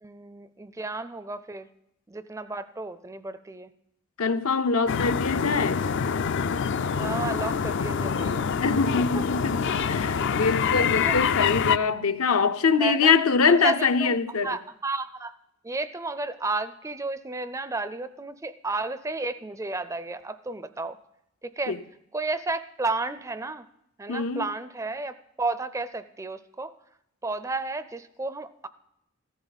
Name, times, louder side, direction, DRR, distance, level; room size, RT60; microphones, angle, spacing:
voice 1, 0.0-1.7 2.1-3.7 6.9-8.5 9.0-9.2 11.0-11.5 12.8-13.1 13.5-14.2 14.4-15.3 15.6-21.0 21.4-21.8 22.1-23.7 24.0-26.7 27.2-28.7, right 3 dB, 15° right, 0.4 m, -32 dB
voice 2, 4.2-5.8 8.6-9.6 9.9-14.6 21.7-21.8 24.1-24.5, left 5 dB, 80° left, 0.7 m, -23 dB
sound 1, 4.9-11.8, left 6 dB, 55° left, 0.4 m, -26 dB
15.5 x 14.0 x 4.0 m
head